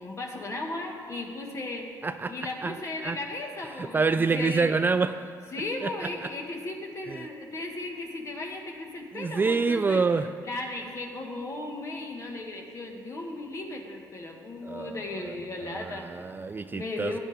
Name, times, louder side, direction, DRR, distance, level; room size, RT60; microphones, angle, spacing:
voice 1, 0.0-1.9 2.3-4.7 5.5-10.0 10.4-16.1 16.7-17.2, left 2 dB, 35° left, 1 dB, 1.8 m, -36 dB
voice 2, 2.0-2.3 2.6-2.8 3.0-3.2 3.8-5.2 5.8-5.9 6.2-6.3 7.1-7.3 9.1-10.3 14.6-17.2, right 4 dB, 25° right, 9 dB, 0.3 m, -27 dB
15.5 x 10.5 x 3.6 m, 2.2 s
cardioid pair, 100°, 8 cm